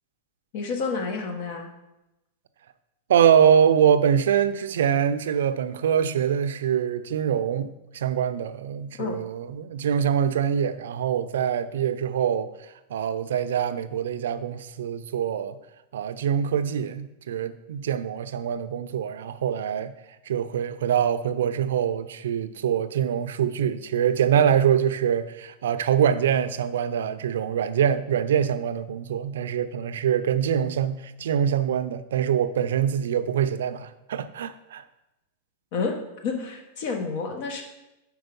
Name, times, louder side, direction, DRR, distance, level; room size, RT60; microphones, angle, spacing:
voice 1, 0.5-1.7 9.0-9.2 35.7-36.0 36.2-37.6, left 4 dB, 55° left, 4 dB, 1.1 m, -29 dB
voice 2, 3.1-12.5 12.9-15.6 15.9-19.9 20.3-34.8, right 8 dB, 85° right, 12 dB, 0.4 m, -24 dB
4.6 x 4.4 x 5.2 m, 0.94 s
supercardioid pair, 135°, 0 cm